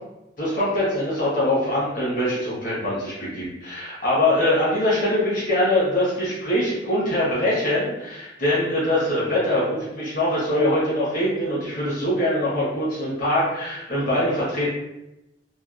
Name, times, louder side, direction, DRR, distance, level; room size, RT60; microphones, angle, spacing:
voice 1, 0.4-14.7, left 1 dB, 45° left, -8 dB, 1.4 m, -23 dB
3.3 x 2.5 x 2.5 m, 0.92 s
head